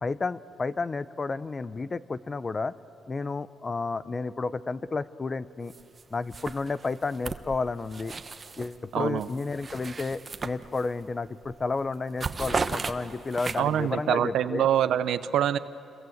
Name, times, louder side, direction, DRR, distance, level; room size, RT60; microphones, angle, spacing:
voice 1, 0.0-2.7 3.1-5.7 6.1-8.1 8.6-14.7, left 3 dB, 30° left, 15 dB, 0.7 m, -31 dB
sound 1, 5.7-6.0 6.3-8.8 9.2-11.1 11.4-11.7 11.9-13.9, right 4 dB, 35° right, 1.0 m, -35 dB
voice 2, 8.9-9.3 13.6-15.6, right 10 dB, 75° right, 14 dB, 0.7 m, -25 dB
27.5 x 22.5 x 7.9 m, 2.8 s
cardioid pair, 90°, 0 cm